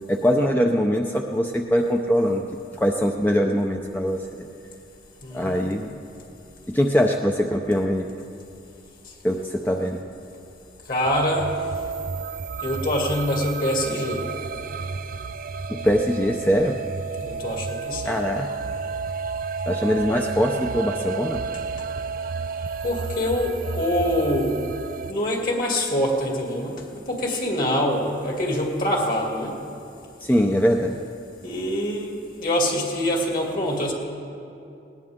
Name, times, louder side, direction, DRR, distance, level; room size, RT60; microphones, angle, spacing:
voice 1, 0.1-2.4 2.7-4.3 5.3-5.9 6.7-8.1 9.2-10.0 15.7-16.7 18.0-18.5 19.7-21.4 30.2-31.0, equal, 10° left, 2 dB, 0.5 m, -22 dB
voice 2, 5.2-5.7 10.9-11.5 12.6-14.2 17.2-18.2 22.8-24.6 25.1-26.8 27.1-29.6 31.4-33.9, left 1 dB, 50° left, 0 dB, 2.6 m, -25 dB
sound 1, 11.0-25.1, right 5 dB, 50° right, 0.4 m, -31 dB
19.5 x 19.5 x 3.7 m, 2.6 s
head